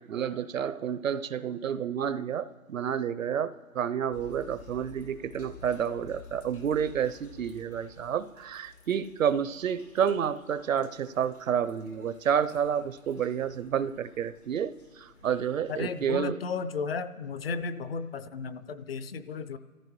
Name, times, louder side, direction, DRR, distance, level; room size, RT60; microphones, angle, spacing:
voice 1, 0.0-16.4, right 8 dB, 65° right, 15 dB, 0.7 m, -30 dB
sound 1, 4.1-16.2, left 5 dB, 85° left, 2.5 m, -53 dB
voice 2, 15.7-19.6, left 5 dB, 45° left, 12 dB, 0.6 m, -34 dB
30.0 x 14.0 x 3.1 m, 1.4 s
figure-of-eight pair, 140°, 43 cm